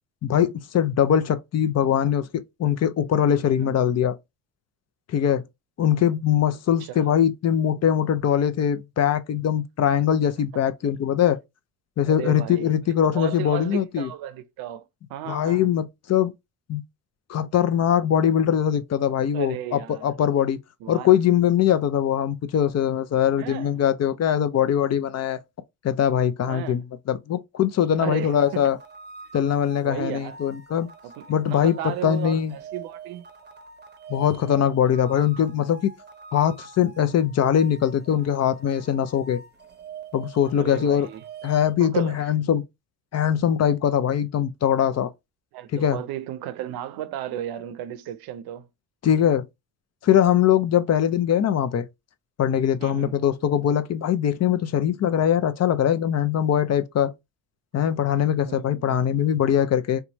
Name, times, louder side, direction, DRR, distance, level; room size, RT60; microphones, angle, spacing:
voice 1, 0.2-4.2 5.1-5.4 5.8-11.4 12.0-14.1 15.3-16.3 16.7-16.8 17.3-20.6 20.9-25.4 25.8-26.8 27.1-28.8 29.3-30.9 31.3-31.8 32.0-32.5 34.1-35.9 36.3-39.4 40.1-41.1 41.4-42.6 43.1-45.1 45.7-46.0 49.0-49.5 50.0-51.9 52.4-57.1 57.7-60.0, left 9 dB, 45° left, 0.5 m, -22 dB
voice 2, 6.8-7.2 12.1-12.7 13.1-15.7 19.3-20.2 20.8-21.1 23.4-23.8 26.5-26.8 28.0-28.6 29.8-30.4 31.0-33.3 40.6-41.2 41.8-42.3 45.5-48.7 52.8-53.2 58.4-59.0, right 12 dB, 80° right, 0.6 m, -34 dB
sound 1, 28.2-41.8, right 4 dB, 30° right, 0.7 m, -45 dB
2.9 x 2.3 x 3.9 m
cardioid pair, 85°, 36 cm